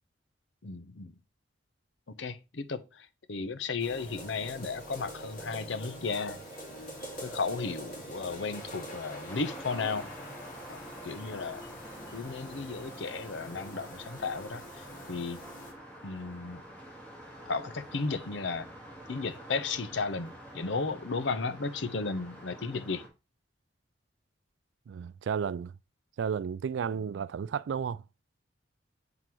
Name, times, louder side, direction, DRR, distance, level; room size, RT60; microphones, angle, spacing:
voice 1, 0.6-1.1 2.2-6.4 7.2-10.1 10.7-11.6 12.1-15.4 16.0-16.6 17.5-18.7 19.1-23.1, left 4 dB, 75° left, 0.7 m, -34 dB
sound 1, 3.8-15.7, equal, 45° left, 3.0 m, -44 dB
sound 2, 6.1-13.5, right 1 dB, 15° right, 2.2 m, -56 dB
sound 3, 9.3-23.1, right 1 dB, 10° left, 1.9 m, -48 dB
voice 2, 24.9-25.7 26.2-28.0, right 7 dB, 80° right, 0.3 m, -32 dB
7.6 x 3.9 x 4.6 m
head